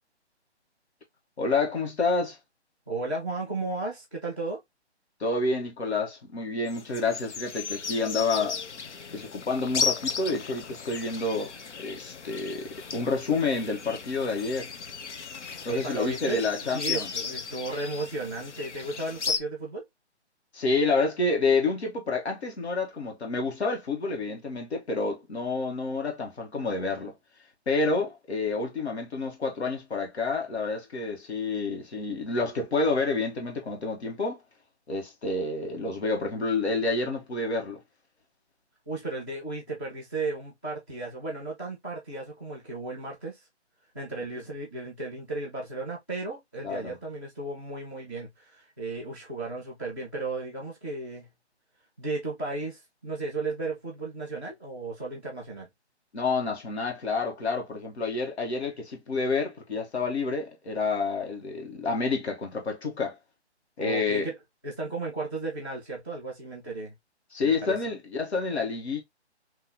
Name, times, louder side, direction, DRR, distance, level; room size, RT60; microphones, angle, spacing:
voice 1, 1.4-2.4 5.2-8.6 9.1-11.5 11.8-14.7 15.6-17.1 20.5-27.1 27.7-34.4 34.9-37.8 46.6-46.9 56.1-63.2 63.8-64.3 67.3-69.0, left 3 dB, 70° left, 1.6 m, -29 dB
voice 2, 2.9-4.6 15.7-16.4 16.7-19.8 38.9-43.4 43.9-51.3 52.0-55.7 63.8-64.4 64.6-66.9 67.4-67.8, right 3 dB, 10° left, 0.5 m, -34 dB
sound 1, 6.7-19.4, left 5 dB, 85° left, 0.8 m, -35 dB
3.7 x 2.8 x 2.9 m
hypercardioid pair, 165°, 34 cm